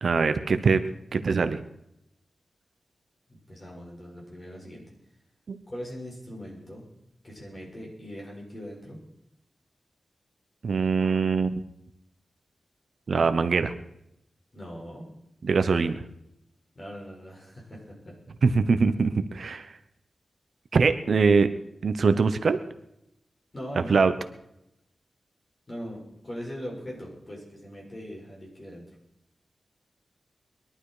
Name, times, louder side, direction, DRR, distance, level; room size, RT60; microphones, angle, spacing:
voice 1, 0.0-0.8 1.1-1.6 5.5-5.6 10.6-11.5 13.1-13.7 15.4-16.0 18.4-19.7 20.7-21.5 21.8-22.6 23.9-24.1, right 4 dB, 65° right, 11 dB, 0.9 m, -22 dB
voice 2, 3.3-4.8 5.7-6.8 7.2-9.0 14.5-15.1 16.7-18.2 23.5-24.0 25.7-28.8, equal, 30° left, -3 dB, 6.6 m, -40 dB
21.5 x 12.0 x 5.0 m, 0.79 s
wide cardioid pair, 155°, 0 cm